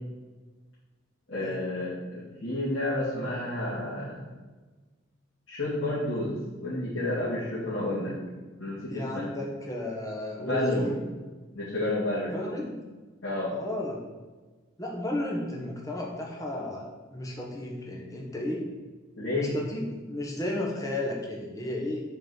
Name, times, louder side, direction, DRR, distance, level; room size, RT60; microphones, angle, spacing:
voice 1, 1.3-4.2 5.5-8.1 8.6-9.3 10.4-10.9 11.5-12.4 13.2-13.5 19.2-19.5, left 1 dB, 80° left, -10 dB, 2.3 m, -30 dB
voice 2, 8.9-11.0 12.3-12.8 13.5-14.0 14.8-18.7 19.3-22.0, left 1 dB, 15° left, -2 dB, 1.1 m, -33 dB
6.0 x 4.5 x 6.1 m, 1.3 s
head